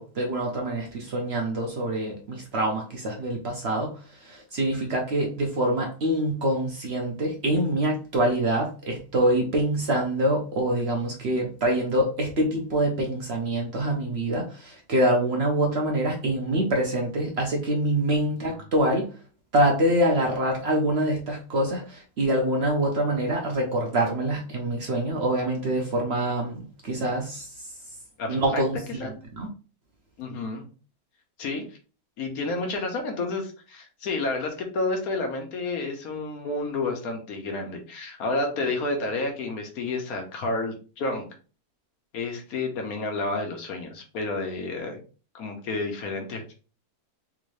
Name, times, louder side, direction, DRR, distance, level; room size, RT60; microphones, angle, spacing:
voice 1, 0.0-19.2 19.5-27.7 28.3-29.5, right 1 dB, 55° right, 1 dB, 0.8 m, -25 dB
voice 2, 28.2-28.6 29.0-29.1 30.2-30.6 31.4-31.7 32.2-41.3 42.1-45.0 45.3-46.4, left 3 dB, 70° left, 3 dB, 1.3 m, -30 dB
3.6 x 2.6 x 3.2 m, 0.36 s
omnidirectional pair, 1.6 m